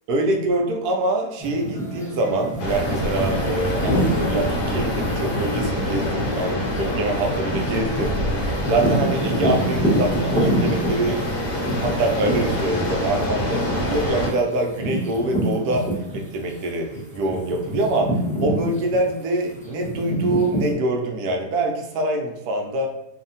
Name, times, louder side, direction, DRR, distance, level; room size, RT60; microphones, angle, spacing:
voice 1, 0.1-11.2 11.5-18.1 18.4-22.9, right 2 dB, 75° right, 2 dB, 1.0 m, -25 dB
sound 1, 1.4-16.5 16.9-20.7, right 1 dB, 10° left, 0.3 m, -28 dB
sound 2, 2.6-14.3, left 1 dB, 75° left, 1.3 m, -25 dB
3.2 x 2.1 x 2.6 m, 0.83 s
omnidirectional pair, 1.8 m